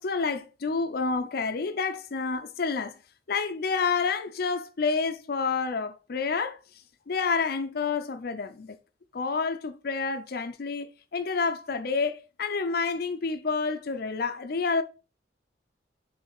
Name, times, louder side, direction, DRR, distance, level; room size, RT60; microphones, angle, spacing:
voice 1, 0.0-3.0 3.3-6.6 7.1-8.8 9.1-14.8, left 4 dB, 55° left, 0.5 m, -29 dB
6.3 x 3.3 x 4.7 m
head